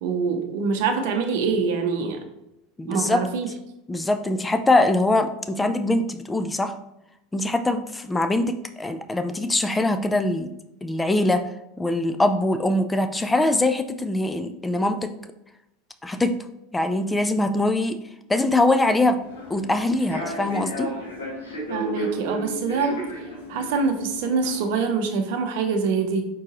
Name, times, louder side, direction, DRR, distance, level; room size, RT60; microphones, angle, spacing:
voice 1, 0.0-2.2 2.9-3.5 21.7-23.0 23.5-26.3, right 5 dB, 60° right, 5 dB, 0.7 m, -24 dB
voice 2, 2.8-3.2 3.9-6.7 7.3-10.5 10.8-11.4 11.8-15.1 16.0-16.4 16.7-18.0 18.3-19.2 19.5-20.9, left 2 dB, 15° left, 8 dB, 0.4 m, -22 dB
Human voice / Subway metro underground, 19.2-24.7, equal, 80° left, 1.6 m, -33 dB
4.5 x 3.7 x 3.0 m, 0.86 s
figure-of-eight pair, 80°, 0 cm